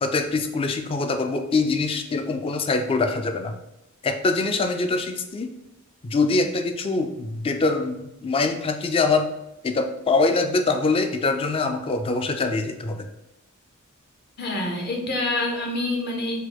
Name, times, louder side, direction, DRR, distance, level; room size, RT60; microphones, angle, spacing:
voice 1, 0.0-3.5 4.0-5.5 6.0-9.3 9.6-13.1, left 3 dB, 25° left, 6 dB, 0.3 m, -24 dB
voice 2, 14.4-16.4, left 2 dB, 50° left, 1 dB, 1.0 m, -26 dB
4.5 x 2.3 x 4.3 m, 0.86 s
head